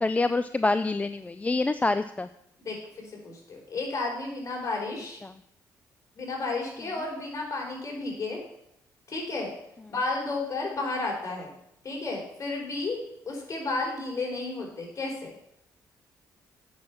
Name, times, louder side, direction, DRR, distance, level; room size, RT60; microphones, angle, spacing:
voice 1, 0.0-2.3, left 3 dB, 20° left, 12 dB, 0.4 m, -26 dB
voice 2, 2.6-5.2 6.2-8.4 9.1-9.5 9.9-11.5 11.8-13.0 13.3-15.3, left 3 dB, 45° left, -1 dB, 4.5 m, -32 dB
8.6 x 6.3 x 7.1 m, 0.76 s
cardioid pair, 75°, 8 cm